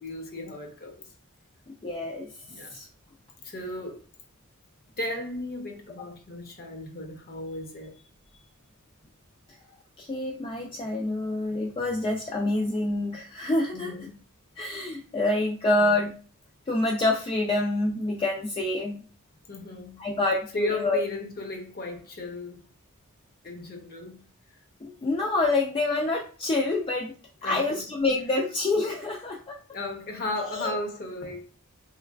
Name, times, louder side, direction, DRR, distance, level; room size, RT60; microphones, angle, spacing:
voice 1, 0.0-1.0 2.5-2.7 3.4-4.0 5.0-7.9 13.7-14.1 15.8-16.0 19.5-20.0 20.5-22.6 23.4-24.2 27.4-27.8 29.7-31.4, left 1 dB, 45° left, 0.8 m, -35 dB
voice 2, 1.7-2.8 6.0-6.1 10.0-14.1 14.6-16.1 16.7-19.0 20.0-21.0 24.8-27.1 27.4-29.6 30.3-30.8, left 2 dB, 25° left, 0.3 m, -27 dB
3.2 x 3.0 x 2.4 m
head